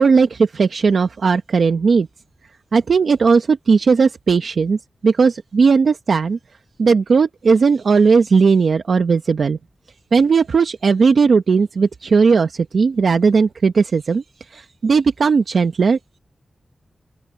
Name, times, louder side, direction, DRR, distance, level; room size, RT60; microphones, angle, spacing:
voice 1, 0.0-2.1 2.7-6.4 6.8-9.6 10.1-16.0, right 5 dB, 80° right, 0.8 m, -16 dB
open air
wide cardioid pair, 85°, 0 cm